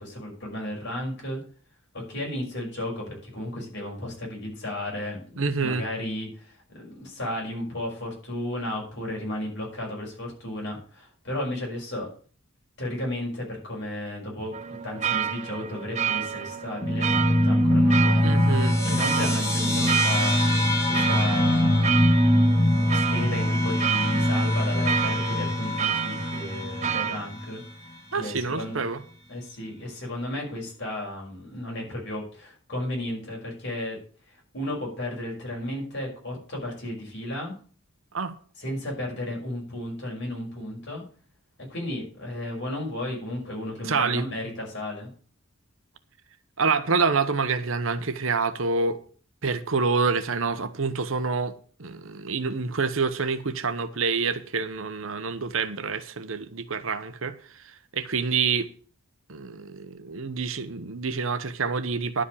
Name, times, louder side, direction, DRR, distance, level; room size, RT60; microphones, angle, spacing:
voice 1, 0.0-1.4 1.9-12.1 12.8-18.3 18.6-22.3 22.8-27.6 28.1-28.8 29.3-37.5 38.6-41.0 41.6-45.1, left 1 dB, 55° left, 5.7 m, -34 dB
voice 2, 5.4-5.8 18.2-18.7 28.1-29.0 38.1-38.3 43.8-44.3 46.6-49.0 49.4-51.5 51.8-57.3 57.9-58.7 59.3-62.2, right 4 dB, 65° right, 1.0 m, -27 dB
sound 1, 14.5-27.2, right 8 dB, 35° right, 0.6 m, -30 dB
sound 2, 16.8-27.6, left 1 dB, 15° left, 2.8 m, -23 dB
11.0 x 5.1 x 8.5 m
head